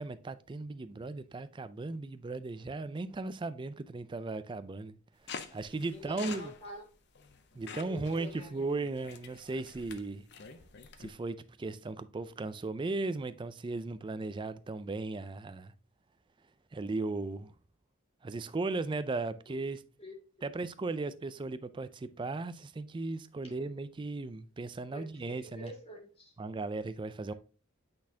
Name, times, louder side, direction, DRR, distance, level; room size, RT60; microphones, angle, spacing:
voice 1, 0.0-5.0 5.5-6.5 7.6-10.2 11.0-15.7 16.7-17.5 18.2-19.8 20.4-25.7 26.4-27.3, right 3 dB, 25° right, 0.3 m, -36 dB
sound 1, 5.3-11.1, left 5 dB, 55° left, 0.6 m, -47 dB
voice 2, 5.9-6.9 7.6-8.5 19.5-19.6 20.0-20.6 24.9-26.3, equal, 30° left, 1.9 m, -47 dB
8.7 x 4.1 x 2.7 m
head